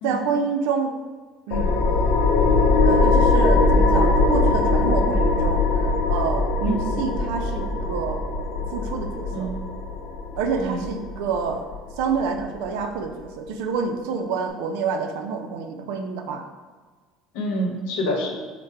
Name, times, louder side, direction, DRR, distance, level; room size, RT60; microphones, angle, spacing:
voice 1, 0.0-1.0 1.5-1.9 2.8-8.2 8.7-9.5 10.4-11.7 12.0-16.4, right 5 dB, 85° right, 5 dB, 0.5 m, -27 dB
sound 1, 1.5-12.6, left 3 dB, 60° left, 0.5 m, -21 dB
voice 2, 17.3-18.3, equal, 80° left, 1 dB, 0.9 m, -27 dB
4.6 x 2.1 x 4.5 m, 1.4 s
cardioid pair, 160°, 0 cm